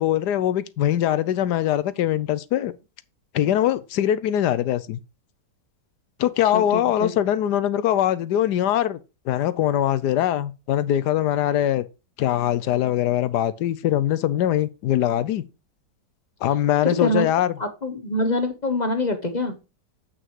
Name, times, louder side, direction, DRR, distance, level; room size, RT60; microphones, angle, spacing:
voice 1, 0.0-2.7 3.3-5.0 6.2-9.0 9.3-11.9 12.2-15.4 16.4-17.5, left 11 dB, 70° left, 1.3 m, -22 dB
voice 2, 6.5-7.1 16.8-17.3 17.6-19.6, left 1 dB, 30° left, 1.0 m, -25 dB
8.1 x 6.3 x 4.7 m
omnidirectional pair, 1.9 m